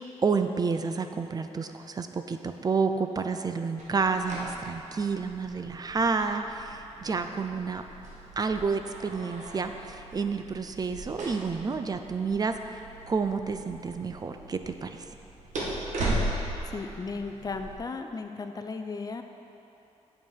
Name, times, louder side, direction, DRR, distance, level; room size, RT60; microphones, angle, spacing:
voice 1, 0.0-7.8 8.4-12.5 13.1-14.9, right 5 dB, 35° right, 7 dB, 0.5 m, -30 dB
sound 1, 3.8-17.7, right 1 dB, 85° right, 1.7 m, -38 dB
voice 2, 16.6-19.2, left 4 dB, 30° left, 6 dB, 0.5 m, -35 dB
8.6 x 7.3 x 4.7 m, 2.8 s
wide cardioid pair, 130°, 12 cm